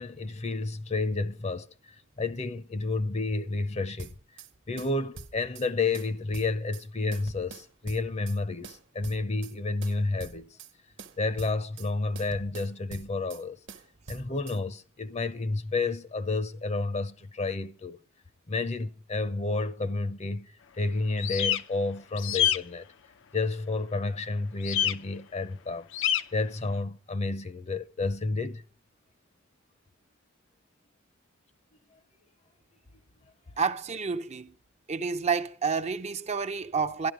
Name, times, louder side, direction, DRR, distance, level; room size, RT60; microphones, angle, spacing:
voice 1, 0.0-1.7 2.2-4.1 4.7-10.6 11.2-13.6 14.1-18.0 18.5-22.9 23.3-25.9 26.3-28.6, left 3 dB, 30° left, 0.7 m, -30 dB
sound 1, 4.0-4.5 4.8-5.7 5.9-6.9 7.1-8.4 8.6-9.5 9.8-10.7 11.0-11.9 12.2-13.4 13.7-14.6, right 3 dB, 60° right, 1.3 m, -45 dB
sound 2, 21.2-21.6 22.2-22.6 24.6-24.9 25.9-26.2, left 10 dB, 65° left, 0.6 m, -25 dB
voice 2, 33.6-34.5 34.9-37.1, right 5 dB, 30° right, 0.6 m, -29 dB
13.0 x 12.0 x 5.1 m
head